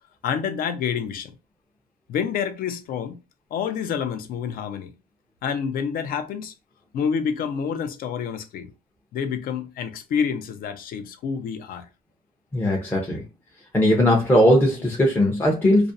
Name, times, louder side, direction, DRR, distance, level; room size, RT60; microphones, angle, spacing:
voice 1, 0.2-1.4 2.1-3.2 3.5-4.9 5.4-6.5 6.9-8.7 9.1-11.9, left 7 dB, 60° left, 0.5 m, -28 dB
voice 2, 12.5-13.2 13.7-15.9, left 1 dB, 10° left, 0.5 m, -19 dB
2.4 x 2.0 x 2.5 m
cardioid pair, 110°, 17 cm